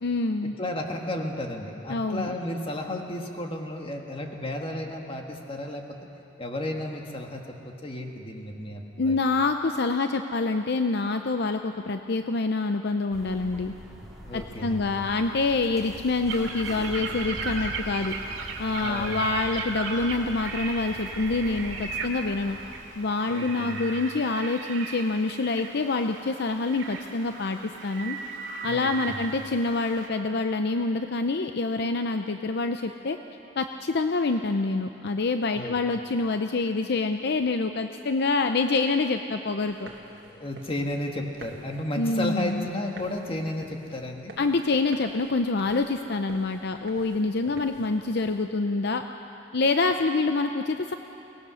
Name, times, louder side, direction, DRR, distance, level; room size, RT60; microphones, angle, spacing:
voice 1, 0.0-0.6 1.9-2.4 9.0-13.7 14.3-18.1 18.6-22.6 23.0-28.2 28.6-33.2 33.6-39.9 42.0-42.7 44.4-49.0 49.5-50.9, left 3 dB, 60° left, 7 dB, 0.6 m, -26 dB
voice 2, 0.6-6.0 6.4-9.2 14.2-14.9 18.8-19.3 23.3-23.9 28.6-29.2 35.6-35.8 40.2-44.3 47.4-47.6, left 1 dB, 30° left, 2 dB, 1.8 m, -33 dB
sound 1, 13.1-22.8, equal, ahead, 3.4 m, -43 dB
sound 2, 16.3-30.1, right 4 dB, 80° right, 2.3 m, -37 dB
sound 3, 39.7-48.5, right 2 dB, 60° right, 1.7 m, -49 dB
23.0 x 19.0 x 6.3 m, 3.0 s
head